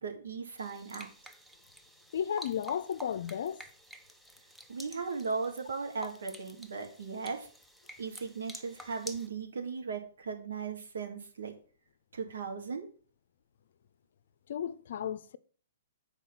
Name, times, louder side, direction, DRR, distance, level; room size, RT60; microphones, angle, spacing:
voice 1, 0.0-1.1 4.7-7.5 8.0-11.5 12.1-12.9, right 5 dB, 75° right, 2.1 m, -37 dB
sound 1, 0.6-9.3, equal, 5° right, 0.6 m, -50 dB
voice 2, 2.1-3.6 14.5-15.4, left 8 dB, 65° left, 0.6 m, -34 dB
7.1 x 4.5 x 5.9 m
hypercardioid pair, 130°, 0 cm